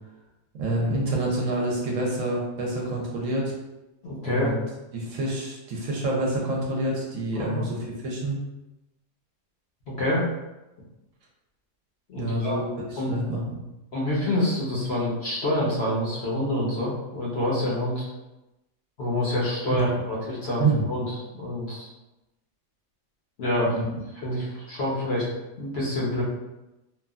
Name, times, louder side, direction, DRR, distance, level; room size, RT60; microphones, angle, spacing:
voice 1, 0.6-3.5 4.3-4.6 4.9-8.4 12.2-12.6 12.9-13.6 19.7-20.0 20.6-20.8 23.7-23.8, right 2 dB, 70° right, -2 dB, 0.9 m, -27 dB
voice 2, 4.0-4.5 7.3-7.6 10.0-10.2 12.1-12.6 13.0-13.2 13.9-18.1 19.0-21.0 21.3-21.9 23.4-23.8 24.2-25.2 25.6-26.2, left 1 dB, 55° left, -6 dB, 0.9 m, -27 dB
2.9 x 2.3 x 2.3 m, 0.97 s
omnidirectional pair, 1.5 m